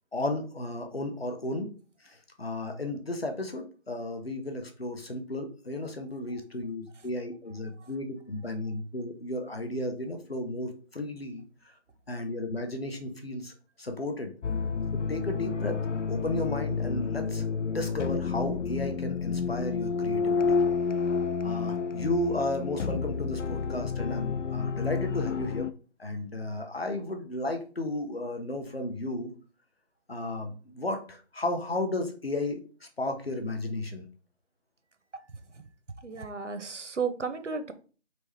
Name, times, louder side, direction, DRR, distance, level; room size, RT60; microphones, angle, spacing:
voice 1, 0.1-1.7 2.0-11.4 12.1-14.3 14.9-20.6 21.4-25.7 26.0-29.3 30.1-34.0, left 2 dB, 55° left, 5 dB, 1.1 m, -34 dB
sound 1, 14.4-25.7, left 5 dB, 85° left, 0.5 m, -30 dB
voice 2, 36.0-37.7, right 5 dB, 90° right, 10 dB, 0.8 m, -33 dB
4.5 x 3.2 x 3.4 m, 0.38 s
figure-of-eight pair, 175°, 35 cm